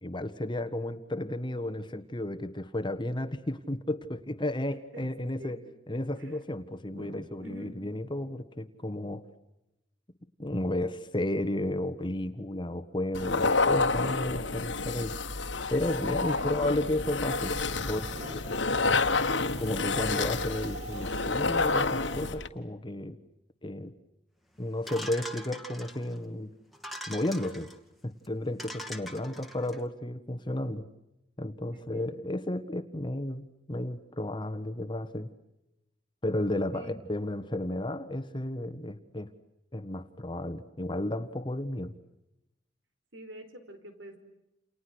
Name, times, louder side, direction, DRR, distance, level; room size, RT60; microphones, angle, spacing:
voice 1, 0.0-5.6 5.9-9.2 10.4-15.2 15.7-17.6 17.8-18.1 18.9-19.0 19.6-23.2 23.6-23.9 24.6-26.5 27.1-27.7 28.0-30.8 31.4-35.3 36.2-39.3 39.7-41.9, left 1 dB, 25° left, 9 dB, 1.4 m, -33 dB
voice 2, 4.9-5.6 6.2-6.4 6.9-7.8 8.2-8.4 16.3-16.8 18.0-18.4 29.2-29.4 31.7-32.1 36.7-37.0 43.1-44.2, right 1 dB, 85° right, 8 dB, 4.8 m, -47 dB
sound 1, 13.1-22.5, left 3 dB, 75° left, 1.8 m, -29 dB
Wind, 17.2-22.3, right 1 dB, 40° right, 2.0 m, -45 dB
sound 2, 24.9-26.2 26.7-27.8 28.2-28.3 28.6-29.8, equal, ahead, 2.3 m, -42 dB
30.0 x 29.5 x 6.4 m, 0.91 s
head